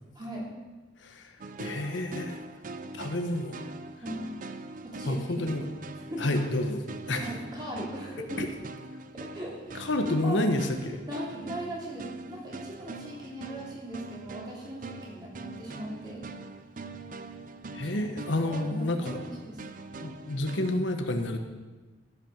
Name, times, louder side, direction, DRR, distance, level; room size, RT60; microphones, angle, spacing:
voice 1, 0.1-0.5 4.0-4.2 4.8-5.4 6.1-6.3 7.2-8.4 9.2-9.9 10.2-10.4 11.1-16.3 17.8-18.0 18.4-19.7, equal, 25° right, -4 dB, 2.9 m, -39 dB
voice 2, 1.0-1.3 1.6-2.4 2.9-3.6 5.1-5.6 6.2-7.3 8.4-8.5 9.7-11.0 17.7-19.2 20.0-21.4, left 1 dB, 85° left, 6 dB, 1.1 m, -29 dB
sound 1, 1.4-20.8, right 3 dB, 45° right, 0.5 m, -42 dB
14.0 x 5.8 x 6.4 m, 1.2 s
head